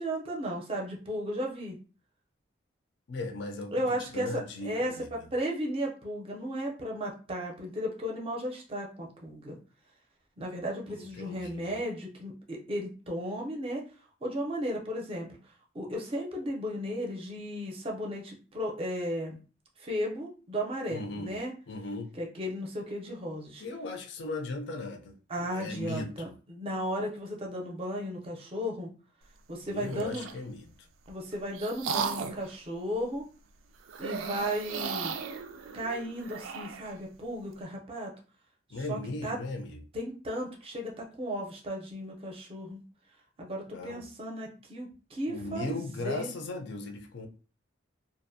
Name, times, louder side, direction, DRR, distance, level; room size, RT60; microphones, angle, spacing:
voice 1, 0.0-1.8 3.7-9.6 10.4-13.8 14.2-15.3 15.7-19.4 19.8-21.5 22.2-23.6 25.3-28.9 29.5-30.3 31.1-33.2 34.0-35.1 35.7-38.1 38.9-39.4 39.9-42.8 43.4-46.3, equal, 30° right, 0.5 m, -35 dB
voice 2, 3.1-3.7 4.0-5.3 10.9-11.7 20.9-21.4 21.7-22.1 23.6-26.3 29.6-30.7 38.7-39.8 43.7-44.0 45.3-47.3, left 2 dB, 60° left, 0.4 m, -37 dB
sound 1, 29.8-30.4 31.1-32.5 33.9-36.9, right 6 dB, 90° right, 0.3 m, -36 dB
2.4 x 2.0 x 2.6 m
head